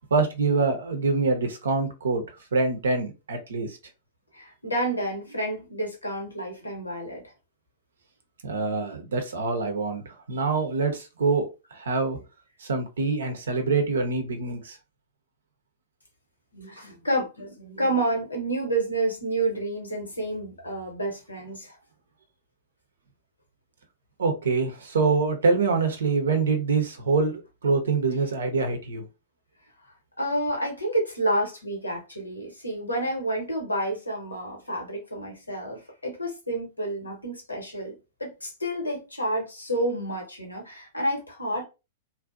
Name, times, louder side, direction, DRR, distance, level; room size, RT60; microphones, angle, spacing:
voice 1, 0.1-2.2 2.5-3.8 8.4-12.2 12.6-14.8 24.2-29.0, right 4 dB, 70° right, 0.6 m, -25 dB
voice 2, 4.3-7.2 16.5-21.8 28.1-28.2 30.2-37.9 38.2-41.6, right 1 dB, 85° left, 0.9 m, -29 dB
2.6 x 2.1 x 2.2 m
figure-of-eight pair, 100°, 0 cm